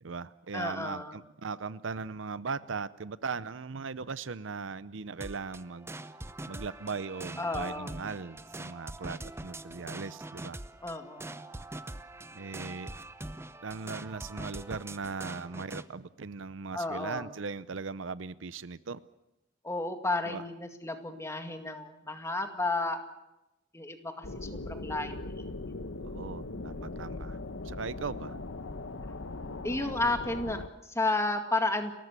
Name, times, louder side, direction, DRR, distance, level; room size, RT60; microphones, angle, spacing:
voice 1, 0.0-5.9 6.4-10.6 12.3-12.9 13.6-19.0 20.3-20.4 26.0-27.4 27.6-28.4, right 4 dB, 75° right, 16 dB, 0.7 m, -38 dB
voice 2, 0.5-1.2 7.4-7.9 10.8-11.4 16.7-17.2 19.6-23.0 23.7-25.5 26.7-27.1 29.6-31.9, left 2 dB, 15° left, 6 dB, 2.1 m, -32 dB
sound 1, 5.2-15.9, right 2 dB, 15° right, 0.7 m, -43 dB
sound 2, 24.2-30.7, left 2 dB, 80° left, 1.0 m, -39 dB
30.0 x 14.0 x 8.3 m, 0.97 s
head